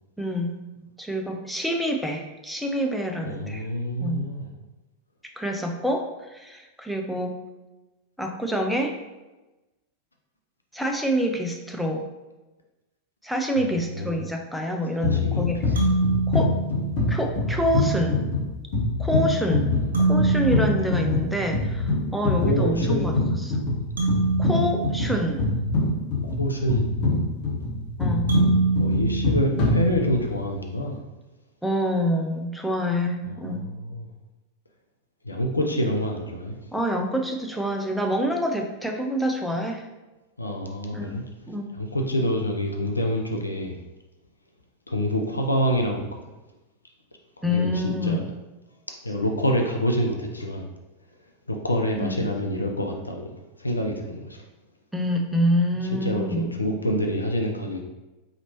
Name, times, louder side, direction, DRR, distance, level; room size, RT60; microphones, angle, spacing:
voice 1, 0.2-0.6 1.0-3.7 4.0-4.2 5.4-7.3 8.2-9.0 10.7-12.1 13.2-15.6 16.3-16.5 17.1-18.2 19.0-19.7 20.0-23.2 23.4-23.6 24.4-25.5 28.0-28.3 31.6-33.7 36.7-39.9 40.9-41.2 41.5-41.7 47.4-48.2 52.0-52.3 54.9-56.6, equal, ahead, 2 dB, 0.5 m, -26 dB
voice 2, 3.2-4.5 13.6-14.2 14.9-15.7 19.7-20.1 22.4-23.1 26.2-26.8 28.7-31.0 33.2-34.1 35.2-36.7 40.4-41.2 41.7-43.8 44.9-46.2 47.4-48.3 49.0-50.7 51.5-53.3 53.6-54.4 56.0-57.8, equal, 80° left, 2 dB, 0.4 m, -27 dB
sound 1, 15.0-30.4, left 2 dB, 45° left, 1.1 m, -25 dB
sound 2, 15.7-17.4 19.9-22.0 24.0-26.1 28.3-30.3, right 3 dB, 70° right, 0.7 m, -26 dB
4.1 x 2.9 x 2.9 m, 1.1 s
figure-of-eight pair, 90°, 0 cm